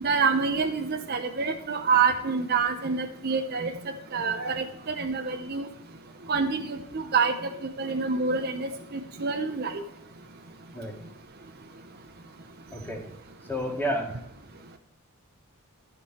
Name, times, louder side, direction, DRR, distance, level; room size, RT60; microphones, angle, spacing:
voice 1, 0.0-3.7 4.1-5.7 6.3-7.5 7.8-8.7 9.2-9.8, right 5 dB, 45° right, 5 dB, 0.7 m, -26 dB
voice 2, 12.7-13.0 13.5-14.1, equal, 10° left, -1 dB, 2.2 m, -30 dB
13.0 x 5.3 x 4.2 m, 0.84 s
head